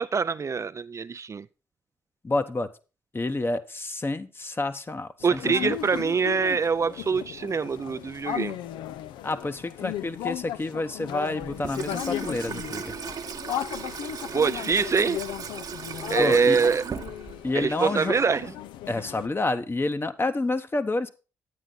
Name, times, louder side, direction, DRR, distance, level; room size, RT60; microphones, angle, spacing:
voice 1, 0.0-1.5 5.2-8.6 14.3-15.2 16.1-16.8 17.5-18.5, right 5 dB, 40° right, 0.4 m, -24 dB
voice 2, 2.2-2.7 3.1-5.7 9.2-13.0 16.2-16.6 17.4-18.2 18.9-21.1, left 2 dB, 30° left, 0.9 m, -29 dB
sound 1, 5.2-19.3, left 11 dB, 80° left, 0.4 m, -36 dB
Water tap faucet / Sink (filling or washing), 11.4-17.7, right 6 dB, 55° right, 1.0 m, -37 dB
9.3 x 9.0 x 3.8 m
hypercardioid pair, 45°, 8 cm